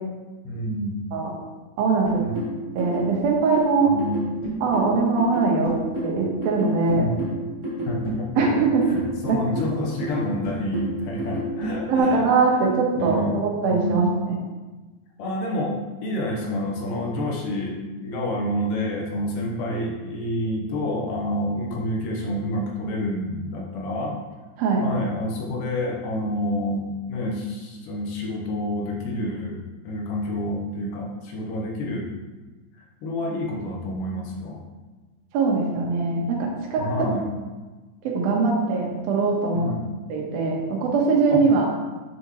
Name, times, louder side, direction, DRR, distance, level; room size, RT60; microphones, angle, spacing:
voice 1, 0.4-1.0 2.2-2.3 3.9-4.4 7.0-7.3 7.9-8.4 8.9-12.2 13.0-14.1 15.2-24.1 24.8-29.6 29.8-32.1 33.0-34.6 36.8-37.3 39.6-39.8 41.3-41.7, left 1 dB, 70° left, -1 dB, 2.4 m, -28 dB
voice 2, 1.8-2.2 2.8-3.9 4.6-5.7 6.0-7.1 8.4-8.8 9.3-9.4 11.9-14.1 24.6-24.9 35.3-36.9 38.0-39.7 40.1-41.7, right 4 dB, 80° right, -1 dB, 3.0 m, -21 dB
sound 1, 2.1-12.0, equal, 45° right, 0.9 m, -31 dB
7.9 x 6.5 x 3.1 m, 1.3 s
omnidirectional pair, 4.2 m